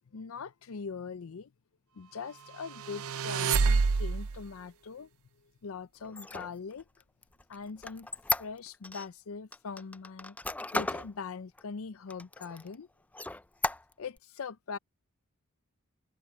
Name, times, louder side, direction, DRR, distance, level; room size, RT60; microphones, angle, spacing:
voice 1, 0.1-1.5 1.9-5.1 5.6-6.8 7.5-8.1 8.4-10.4 10.7-12.9 14.0-14.8, left 5 dB, 65° left, 0.5 m, -41 dB
sound 1, 2.7-4.4, right 4 dB, 70° right, 0.6 m, -27 dB
Squeak, 6.0-9.1 9.5-11.1 11.6-11.7 12.1-12.7 13.1-14.2, left 2 dB, 5° left, 0.3 m, -35 dB
head